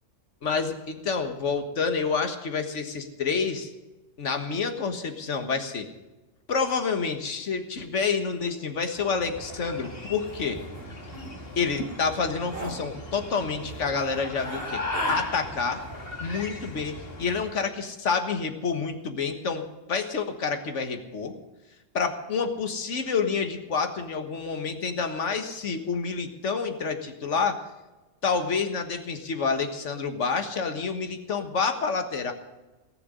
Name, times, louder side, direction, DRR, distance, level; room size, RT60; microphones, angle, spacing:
voice 1, 0.4-3.7 4.2-5.9 6.5-10.6 11.5-14.8 15.1-15.8 16.2-21.3 21.9-27.6 28.2-32.3, left 5 dB, 70° left, 6 dB, 1.8 m, -28 dB
sound 1, 9.0-17.6, left 1 dB, 50° left, 2.4 m, -37 dB
sound 2, 10.3-10.4 10.7-10.9 11.1-11.3 11.8-12.0 12.4-12.8 13.7-13.8 14.4-15.2 16.6-17.0 17.3-17.5, right 2 dB, 45° right, 3.5 m, -40 dB
19.0 x 6.9 x 9.7 m, 1.1 s
omnidirectional pair, 1.3 m